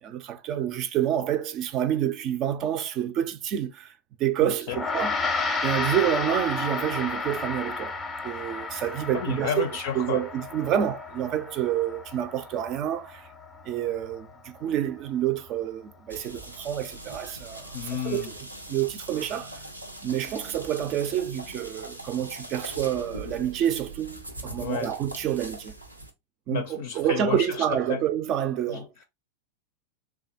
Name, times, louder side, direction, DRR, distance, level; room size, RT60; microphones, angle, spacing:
voice 1, 0.0-3.9 4.2-5.2 5.6-8.0 8.2-9.6 10.0-13.3 13.6-18.3 18.7-19.6 20.0-25.7 26.5-28.9, right 11 dB, 35° right, 0.4 m, -28 dB
voice 2, 4.4-4.8 9.1-10.3 17.7-18.3 24.6-25.0 26.5-28.0 28.7-29.0, left 8 dB, 55° left, 0.5 m, -32 dB
Gong, 4.7-14.2, left 4 dB, 15° left, 0.6 m, -32 dB
sound 1, 16.1-26.1, right 1 dB, 85° right, 0.6 m, -41 dB
3.3 x 2.2 x 2.6 m
figure-of-eight pair, 90°, 0 cm